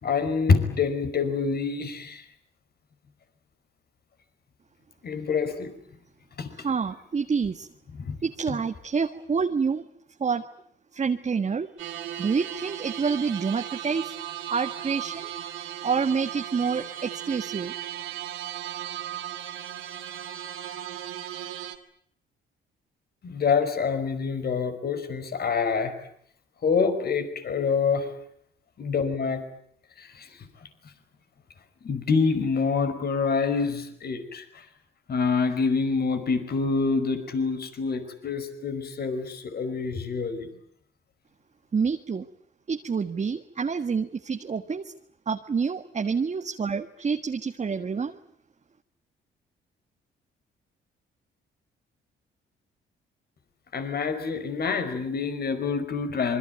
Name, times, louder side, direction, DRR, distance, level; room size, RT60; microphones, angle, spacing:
voice 1, 0.0-2.2 5.0-5.7 6.4-6.7 8.0-8.2 8.5-8.6 23.2-25.9 26.6-28.1 28.8-29.4 30.0-30.5 31.8-34.6 35.1-40.5 53.7-56.4, left 5 dB, 50° left, 9 dB, 5.2 m, -26 dB
voice 2, 6.6-7.7 8.2-9.8 10.2-10.5 10.9-11.8 12.2-14.1 14.5-15.3 15.8-17.7 41.7-42.3 42.7-44.9 45.3-48.2, right 5 dB, 35° right, 5 dB, 1.6 m, -27 dB
sound 1, 11.8-21.8, right 11 dB, 90° right, 2.7 m, -36 dB
26.5 x 23.0 x 9.2 m, 0.68 s
cardioid pair, 90°, 20 cm